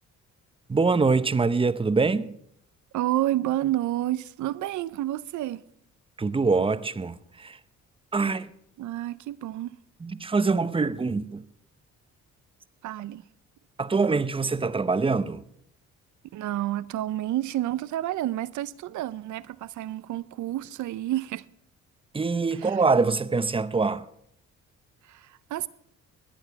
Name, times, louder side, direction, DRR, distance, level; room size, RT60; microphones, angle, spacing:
voice 1, 0.7-2.3 6.2-7.6 8.1-8.5 10.0-11.4 13.8-15.4 22.1-24.0, right 4 dB, 20° right, 0.7 m, -24 dB
voice 2, 2.9-5.6 8.8-9.8 12.8-13.2 16.3-21.4 22.5-22.8 25.1-25.7, right 14 dB, 75° right, 0.7 m, -30 dB
21.5 x 9.0 x 4.7 m
cardioid pair, 90°, 30 cm